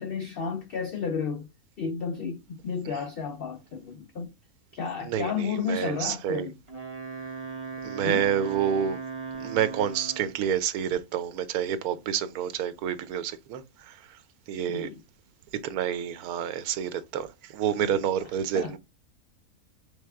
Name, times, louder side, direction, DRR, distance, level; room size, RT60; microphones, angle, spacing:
voice 1, 0.0-1.5 1.8-4.3 4.7-6.6 8.0-8.3 14.7-15.0 17.8-18.1 18.5-18.8, left 6 dB, 80° left, 0.5 m, -32 dB
voice 2, 5.0-6.5 7.8-9.0 9.4-14.2 14.5-14.9 15.6-18.8, right 9 dB, 80° right, 1.1 m, -29 dB
Wind instrument woodwind instrument, 6.7-10.4, right 4 dB, 25° right, 1.0 m, -38 dB
3.5 x 3.4 x 3.4 m
omnidirectional pair, 1.6 m